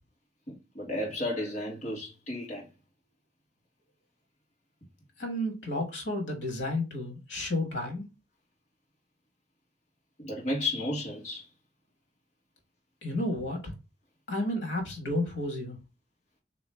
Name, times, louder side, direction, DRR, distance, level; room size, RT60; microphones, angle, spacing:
voice 1, 0.5-2.7 10.2-11.5, left 1 dB, 40° left, 1.7 m, -33 dB
voice 2, 5.2-8.0 13.0-13.7 14.3-15.8, left 1 dB, 80° left, 1.5 m, -32 dB
3.5 x 3.0 x 3.3 m
head